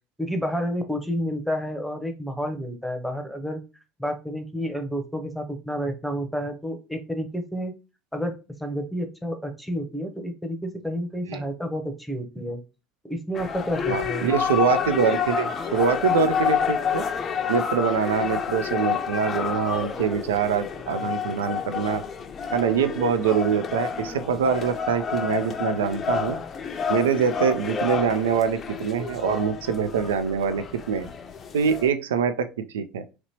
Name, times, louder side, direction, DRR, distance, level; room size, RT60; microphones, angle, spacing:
voice 1, 0.2-3.6 4.0-7.7 8.1-12.6 13.0-14.3, equal, ahead, 6 dB, 0.8 m, -30 dB
sound 1, 13.3-31.9, left 7 dB, 40° left, 0.5 m, -29 dB
voice 2, 13.9-17.0 17.5-22.0 22.5-26.4 26.9-31.1 31.5-33.0, right 7 dB, 80° right, 10 dB, 0.3 m, -24 dB
3.0 x 2.9 x 2.8 m, 0.30 s
hypercardioid pair, 70°, 0 cm